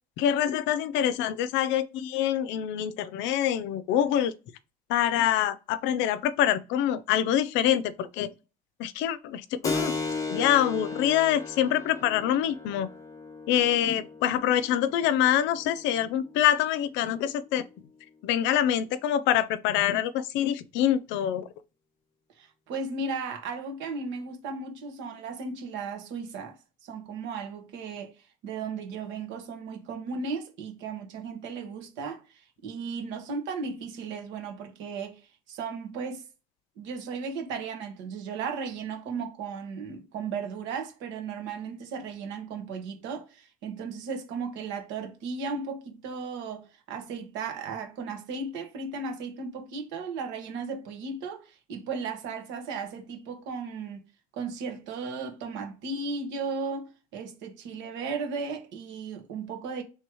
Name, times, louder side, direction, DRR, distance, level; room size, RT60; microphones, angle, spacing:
voice 1, 0.2-4.3 4.9-8.3 8.8-9.9 10.3-12.9 13.5-17.6 18.2-21.5, left 11 dB, 80° left, 0.5 m, -25 dB
Keyboard (musical), 9.6-17.8, left 4 dB, 15° left, 0.8 m, -37 dB
voice 2, 22.4-36.2 36.8-54.0 54.3-59.8, right 4 dB, 75° right, 1.4 m, -35 dB
3.3 x 3.0 x 4.7 m
cardioid pair, 130°, 19 cm